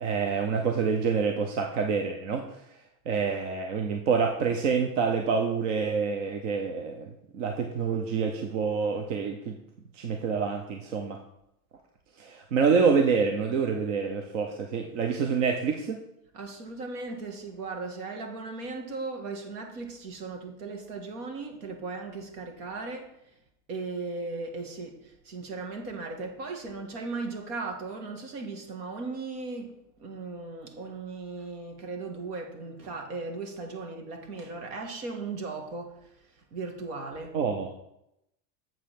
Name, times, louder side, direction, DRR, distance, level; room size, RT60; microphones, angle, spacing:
voice 1, 0.0-2.4 3.1-9.5 10.0-11.2 12.2-16.0 37.3-37.7, right 5 dB, 50° right, 4 dB, 0.8 m, -27 dB
voice 2, 16.3-23.1 23.7-37.4, right 3 dB, 65° right, 3 dB, 1.9 m, -37 dB
7.4 x 5.2 x 5.9 m, 0.82 s
supercardioid pair, 180°, 49 cm